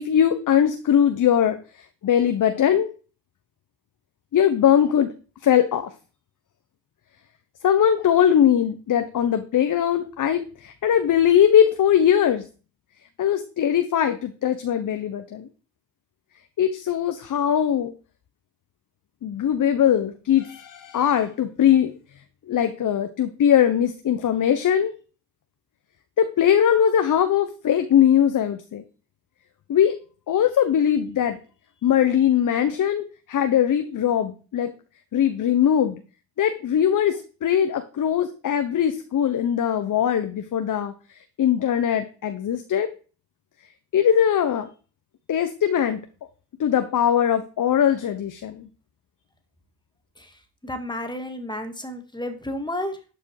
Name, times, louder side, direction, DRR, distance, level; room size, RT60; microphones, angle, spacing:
voice 1, 0.0-1.6 2.0-2.9 4.3-5.1 5.4-5.9 7.6-12.4 13.2-15.5 16.6-17.9 19.2-21.9 22.5-24.9 26.2-28.8 29.7-30.0 30.3-31.4 31.8-34.7 35.1-36.0 36.4-40.9 41.4-42.9 43.9-44.7 45.3-46.0 46.6-48.7, left 9 dB, 55° left, 8 dB, 1.1 m, -20 dB
voice 2, 50.6-52.9, left 1 dB, 10° left, 7 dB, 2.1 m, -31 dB
11.5 x 5.4 x 4.8 m, 0.36 s
cardioid pair, 75°, 37 cm